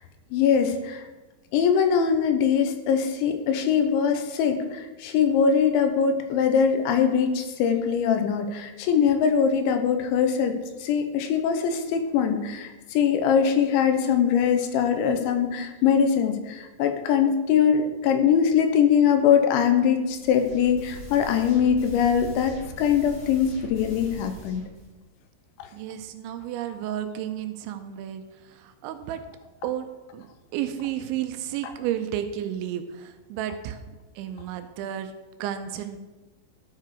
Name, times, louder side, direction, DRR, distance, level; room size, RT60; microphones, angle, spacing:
voice 1, 0.3-1.0 1.5-24.6, left 7 dB, 85° left, 6 dB, 3.0 m, -22 dB
sound 1, 20.0-24.9, right 1 dB, 30° left, 2.0 m, -42 dB
voice 2, 25.7-28.2 28.6-29.2 29.6-29.9 30.1-35.1 35.4-36.0, right 11 dB, 80° right, 8 dB, 2.9 m, -32 dB
13.0 x 4.7 x 4.8 m, 1.2 s
omnidirectional pair, 5.4 m